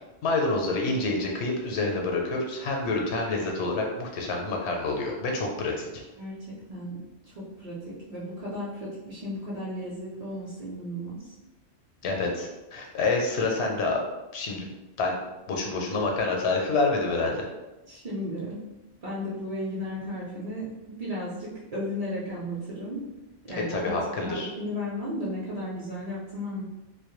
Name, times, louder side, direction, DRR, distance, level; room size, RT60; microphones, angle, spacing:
voice 1, 0.2-6.0 12.0-14.0 14.3-14.7 15.0-15.2 15.5-17.4 23.7-24.5, left 3 dB, 85° left, 1 dB, 0.9 m, -27 dB
voice 2, 7.4-11.2 17.9-18.6 19.0-23.0 23.4-23.9 24.2-26.6, left 1 dB, 45° right, -7 dB, 0.5 m, -34 dB
2.1 x 2.1 x 3.0 m, 1.0 s
omnidirectional pair, 1.1 m